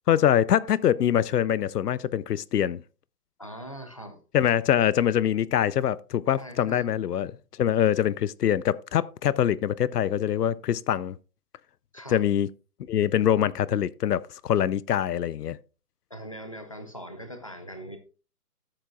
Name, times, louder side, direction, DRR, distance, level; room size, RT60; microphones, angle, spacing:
voice 1, 0.1-2.8 4.3-7.3 7.6-11.2 12.1-12.5 12.9-15.6, left 10 dB, 85° left, 0.6 m, -24 dB
voice 2, 3.4-4.2 6.4-6.9 11.9-12.2 16.1-18.0, equal, 20° left, 0.6 m, -41 dB
13.0 x 7.7 x 2.4 m
hypercardioid pair, 175°, 46 cm